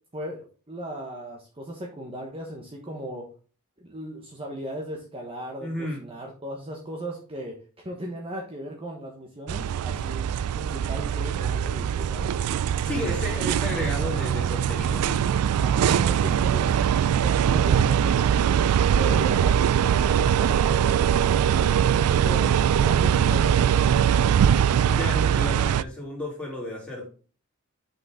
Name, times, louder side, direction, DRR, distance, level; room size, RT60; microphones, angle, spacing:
voice 1, 0.1-3.3 3.8-10.3 10.5-12.4 13.1-13.2 15.6-16.7 17.0-18.6 18.9-24.2, right 1 dB, 25° right, 0 dB, 1.2 m, -37 dB
voice 2, 5.6-6.0 12.8-15.2 24.5-27.1, left 1 dB, 5° left, -3 dB, 3.2 m, -33 dB
sound 1, 9.5-25.8, right 8 dB, 75° right, 0.3 m, -22 dB
7.1 x 5.7 x 3.7 m, 0.38 s
head